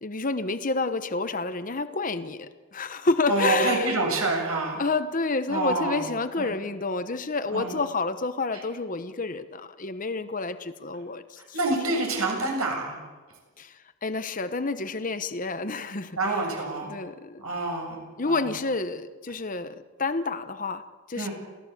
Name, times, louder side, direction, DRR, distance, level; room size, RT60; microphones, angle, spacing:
voice 1, 0.0-4.0 4.8-11.6 13.6-13.7 14.0-16.2 16.8-17.4 18.2-20.8 21.1-21.3, left 3 dB, 35° left, 10 dB, 1.0 m, -29 dB
voice 2, 3.3-4.8 5.5-6.5 7.5-7.8 8.5-8.6 11.5-13.0 16.2-16.9 17.4-18.5 21.2-21.3, right 2 dB, 75° right, 1 dB, 7.4 m, -27 dB
28.0 x 16.5 x 8.5 m, 1.4 s
head